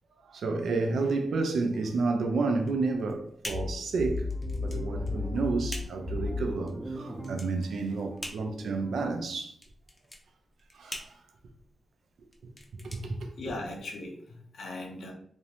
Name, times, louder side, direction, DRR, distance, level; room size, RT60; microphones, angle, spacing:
voice 1, 0.2-4.3 4.6-9.5 10.7-11.1 12.4-13.5, right 3 dB, 85° right, 0.4 m, -31 dB
sound 1, 2.6-13.9, left 1 dB, 25° left, 0.5 m, -45 dB
sound 2, 3.5-9.1, left 3 dB, 30° right, 0.5 m, -36 dB
voice 2, 13.4-15.1, left 2 dB, 80° left, 0.6 m, -39 dB
2.5 x 2.1 x 2.9 m
cardioid pair, 90°, 0 cm